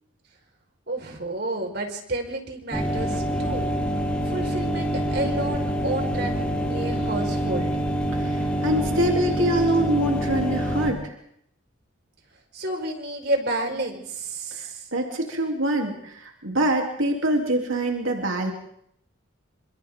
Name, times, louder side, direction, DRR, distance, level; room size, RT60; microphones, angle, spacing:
voice 1, 0.9-3.7 4.2-7.8 12.5-14.9, right 2 dB, 55° right, 3 dB, 5.3 m, -30 dB
sound 1, 2.7-10.9, right 1 dB, 5° left, 4.2 m, -26 dB
voice 2, 8.1-11.1 14.5-18.5, right 1 dB, 85° right, 1 dB, 3.6 m, -25 dB
29.5 x 27.0 x 3.9 m, 0.70 s
head